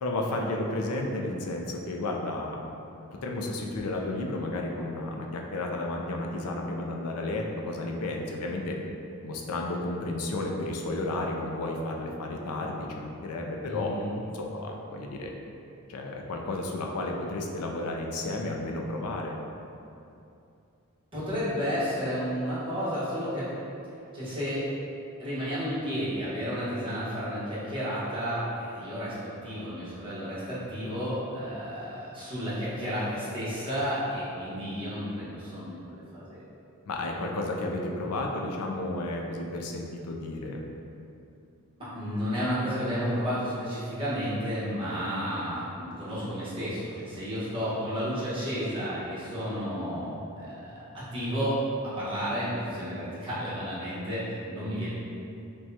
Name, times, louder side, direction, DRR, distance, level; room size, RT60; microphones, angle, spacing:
voice 1, 0.0-2.6 3.2-8.8 9.2-13.9 14.3-15.3 15.9-19.3 36.8-40.6, left 2 dB, 85° left, 1 dB, 0.5 m, -32 dB
voice 2, 13.7-14.1 21.1-23.5 24.1-24.6 25.2-36.4 41.8-50.6 50.9-51.6 52.0-54.9, equal, 25° right, -11 dB, 1.3 m, -32 dB
6.0 x 2.3 x 2.8 m, 2.7 s
head